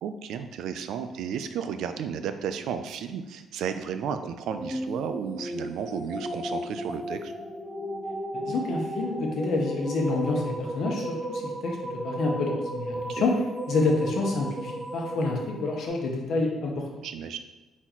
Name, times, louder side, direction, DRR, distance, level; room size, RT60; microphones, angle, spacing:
voice 1, 0.0-7.3 12.9-13.2 17.0-17.4, right 7 dB, 80° right, 9 dB, 0.3 m, -33 dB
sound 1, 4.5-15.9, right 1 dB, 5° right, 0.7 m, -35 dB
voice 2, 8.3-11.8 12.0-13.4 13.7-16.9, left 3 dB, 70° left, 0 dB, 0.9 m, -28 dB
4.1 x 3.0 x 4.0 m, 1.1 s
cardioid pair, 90°, 0 cm